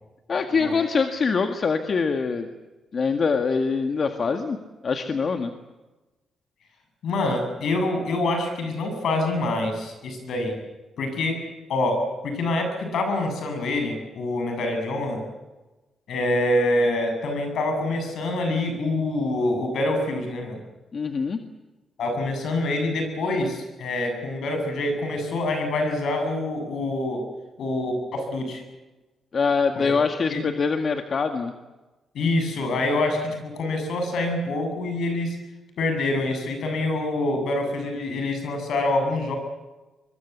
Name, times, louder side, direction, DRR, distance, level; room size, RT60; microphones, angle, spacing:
voice 1, 0.3-2.5 2.9-4.6 4.8-5.5 20.9-21.4 29.3-31.5, left 5 dB, 45° left, 6 dB, 1.8 m, -24 dB
voice 2, 7.0-10.6 11.0-15.2 16.1-20.6 22.0-27.2 27.6-28.6 29.8-29.9 30.3-30.4 32.1-35.4 35.8-39.4, left 2 dB, 75° left, 5 dB, 7.9 m, -26 dB
24.0 x 23.0 x 8.2 m, 1.1 s
cardioid pair, 90°, 0 cm